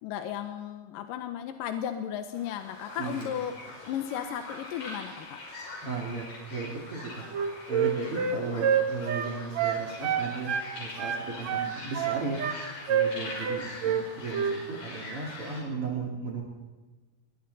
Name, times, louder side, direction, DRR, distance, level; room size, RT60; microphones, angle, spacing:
voice 1, 0.0-3.5 3.8-5.4, left 9 dB, 70° left, 7 dB, 2.3 m, -35 dB
sound 1, 2.3-15.6, left 2 dB, 55° left, 6.5 m, -43 dB
voice 2, 3.0-3.4 5.8-7.2 7.7-12.4 12.9-16.4, right 4 dB, 40° right, 0 dB, 3.2 m, -36 dB
Wind instrument woodwind instrument, 7.2-10.7 11.0-12.6 12.9-13.1 13.4-14.0 14.3-14.6, right 8 dB, 55° right, 2.3 m, -27 dB
28.0 x 22.5 x 4.1 m, 1.3 s
omnidirectional pair, 4.6 m